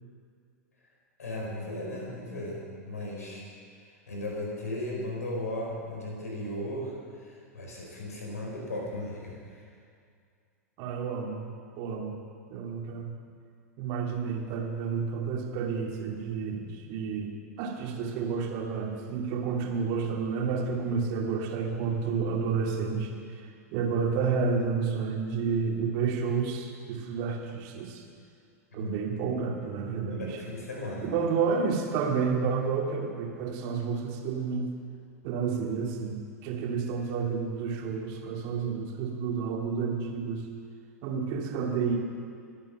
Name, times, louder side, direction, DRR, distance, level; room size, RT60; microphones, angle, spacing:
voice 1, 1.2-3.5 4.1-9.6 28.7-28.9 30.1-31.1, left 1 dB, 70° left, -1 dB, 4.8 m, -36 dB
voice 2, 10.8-12.2 12.5-13.1 13.8-17.3 17.6-28.0 28.7-30.4 31.0-34.7 35.2-40.5 41.0-42.0, right 5 dB, 45° right, 1 dB, 2.5 m, -30 dB
22.5 x 8.8 x 6.0 m, 2.3 s
figure-of-eight pair, 95°, 9 cm